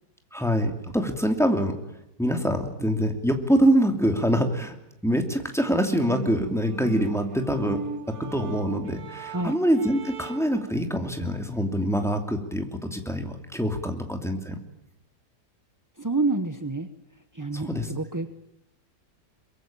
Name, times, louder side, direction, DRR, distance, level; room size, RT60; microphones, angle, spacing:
voice 1, 0.3-1.8 2.2-4.8 5.0-7.8 8.1-14.6 17.5-17.9, equal, ahead, 4 dB, 2.7 m, -25 dB
sound 1, 5.6-10.7, right 5 dB, 55° right, 2.0 m, -37 dB
voice 2, 16.0-16.9 17.3-18.3, right 3 dB, 15° right, 9 dB, 0.7 m, -28 dB
23.0 x 22.5 x 9.0 m, 0.83 s
omnidirectional pair, 1.8 m